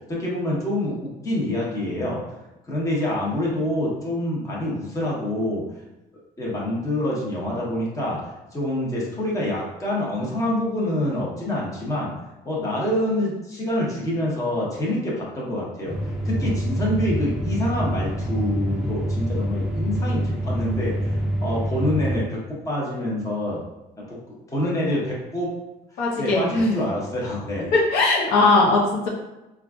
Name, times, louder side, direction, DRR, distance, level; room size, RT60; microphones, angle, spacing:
voice 1, 0.1-2.2 2.7-5.6 6.4-8.2 8.5-12.1 12.4-16.0 16.2-22.4 22.7-23.6 24.1-25.6 26.2-27.7, left 1 dB, 20° left, -5 dB, 1.0 m, -26 dB
sound 1, 15.8-22.2, right 1 dB, ahead, 0.5 m, -26 dB
voice 2, 26.0-26.7 27.7-29.1, left 3 dB, 85° left, -3 dB, 0.8 m, -19 dB
3.8 x 2.4 x 2.4 m, 0.98 s
cardioid pair, 110°, 17 cm